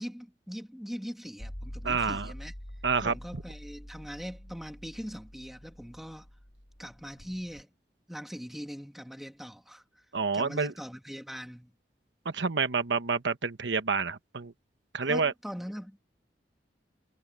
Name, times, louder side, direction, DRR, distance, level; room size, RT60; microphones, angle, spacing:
voice 1, 0.0-2.5 3.0-6.3 6.8-7.7 8.1-9.8 10.3-11.7 15.0-16.0, equal, ahead, 2.1 m, -41 dB
sound 1, 1.4-7.6, equal, 55° left, 4.5 m, -45 dB
voice 2, 1.8-2.3 2.8-3.1 10.1-10.7 12.2-14.5 14.9-15.3, right 4 dB, 85° right, 1.1 m, -28 dB
head